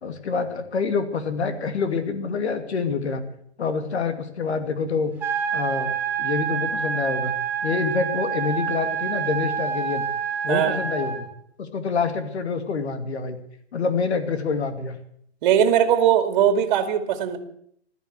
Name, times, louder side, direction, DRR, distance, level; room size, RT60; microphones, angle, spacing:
voice 1, 0.0-3.2 3.6-5.1 5.5-7.3 7.6-10.0 10.4-11.3 11.6-13.4 13.7-15.0, left 5 dB, 70° left, 8 dB, 2.6 m, -26 dB
sound 1, 5.2-11.2, right 7 dB, 5° right, 4.4 m, -27 dB
voice 2, 10.5-10.8 15.4-17.4, right 9 dB, 40° right, 8 dB, 2.4 m, -20 dB
15.5 x 13.0 x 6.8 m, 0.67 s
hypercardioid pair, 145°, 34 cm